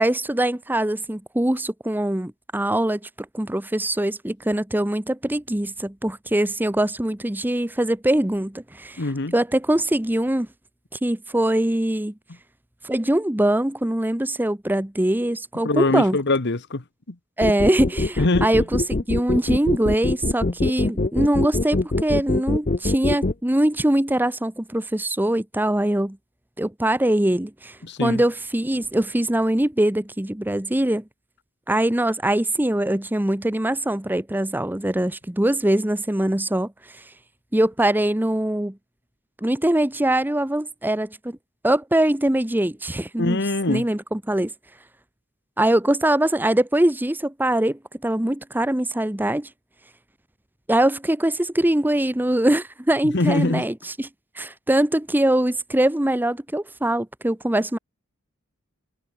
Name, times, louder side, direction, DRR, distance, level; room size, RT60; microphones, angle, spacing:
voice 1, 0.0-3.0 3.3-9.0 9.3-10.5 11.0-12.1 12.8-16.2 17.4-26.2 26.6-31.0 31.7-36.7 37.5-38.8 39.4-41.4 41.6-43.4 43.7-44.5 45.6-49.5 50.7-54.1 54.4-57.8, right 1 dB, 10° right, 0.8 m, -22 dB
voice 2, 9.0-9.3 15.6-17.2 18.2-18.5 27.8-28.2 43.2-43.9 53.0-53.7, left 2 dB, 55° left, 1.3 m, -23 dB
sound 1, 17.4-23.3, left 2 dB, 35° left, 0.8 m, -23 dB
head